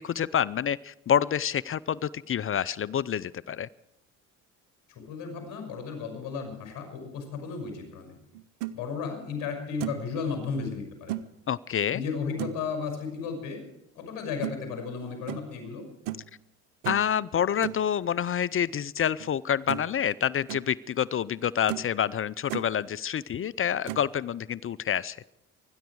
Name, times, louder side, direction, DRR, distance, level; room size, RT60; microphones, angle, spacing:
voice 1, 0.0-3.7 11.5-12.0 16.9-25.2, left 9 dB, 35° left, 21 dB, 0.5 m, -28 dB
voice 2, 5.1-8.1 8.7-11.2 11.9-13.6 14.0-15.8, left 5 dB, 65° left, 5 dB, 6.1 m, -34 dB
sound 1, 8.3-8.7 9.3-9.4 9.8-10.1 11.1-11.3 12.4-12.7 14.4-14.6 15.3-15.5 16.0-16.3 16.8-17.1 17.6-17.8 19.2-19.3 19.7-20.0 20.3-20.6 21.2-21.3 21.7-21.9 22.2-22.7 23.8-24.1, right 14 dB, 85° right, 0.8 m, -35 dB
25.5 x 10.5 x 4.7 m, 0.80 s
supercardioid pair, 65°, 37 cm